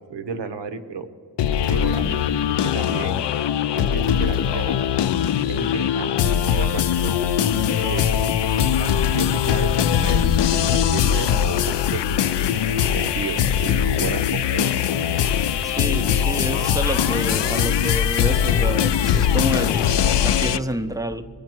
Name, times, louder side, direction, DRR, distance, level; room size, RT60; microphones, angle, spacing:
voice 1, 0.1-1.1 1.7-2.1 2.5-3.2 3.7-4.9 5.5-7.1 7.5-8.1 8.6-12.5 12.7-14.7, right 4 dB, 75° right, 1.0 m, -32 dB
sound 1, 1.4-20.6, left 9 dB, 75° left, 0.5 m, -21 dB
voice 2, 15.6-21.2, right 1 dB, 10° right, 0.4 m, -29 dB
21.5 x 9.3 x 4.4 m
wide cardioid pair, 130°, 42 cm